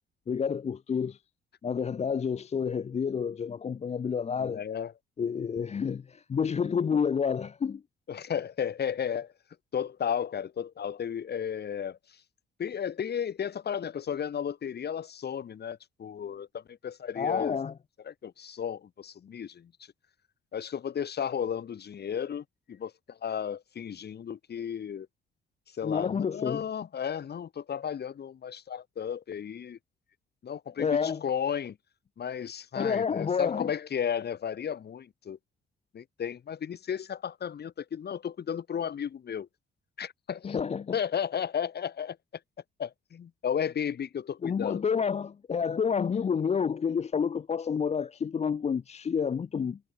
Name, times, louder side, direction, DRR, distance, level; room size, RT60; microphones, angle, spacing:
voice 1, 0.3-1.2 1.6-4.6 5.2-6.0 6.3-7.8 17.2-17.7 25.8-26.6 30.8-31.2 32.8-33.7 40.4-40.9 44.4-49.8, left 6 dB, 35° left, 0.6 m, -29 dB
voice 2, 4.4-4.9 6.7-7.0 8.1-9.3 9.7-12.2 12.6-17.6 18.0-19.7 20.5-25.1 25.7-29.8 30.4-31.8 32.2-35.4 35.9-39.5 40.0-40.6 40.9-42.2 42.8-44.8, left 8 dB, 55° left, 6.4 m, -34 dB
cardioid pair, 90°, 20 cm